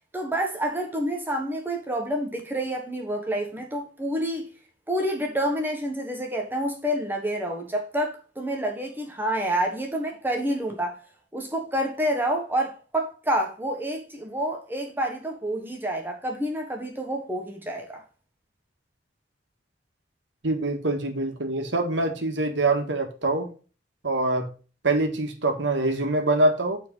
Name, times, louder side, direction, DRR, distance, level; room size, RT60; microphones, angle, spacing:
voice 1, 0.1-4.5 4.9-11.0 11.3-18.0, right 1 dB, 10° right, 1.2 m, -28 dB
voice 2, 20.4-23.5 24.0-24.5 24.8-26.8, right 2 dB, 85° right, 1.7 m, -24 dB
7.3 x 4.5 x 5.4 m
head